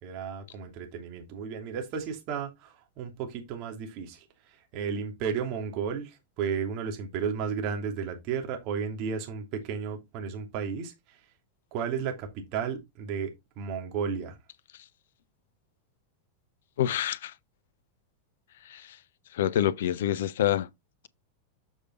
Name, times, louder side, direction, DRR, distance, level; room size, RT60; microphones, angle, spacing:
voice 1, 0.0-11.2 11.7-14.4, right 6 dB, 40° right, 2.9 m, -33 dB
voice 2, 16.8-17.3 18.7-19.0 19.3-20.7, left 11 dB, 60° left, 0.6 m, -27 dB
7.3 x 5.0 x 4.1 m
figure-of-eight pair, 90°, 0 cm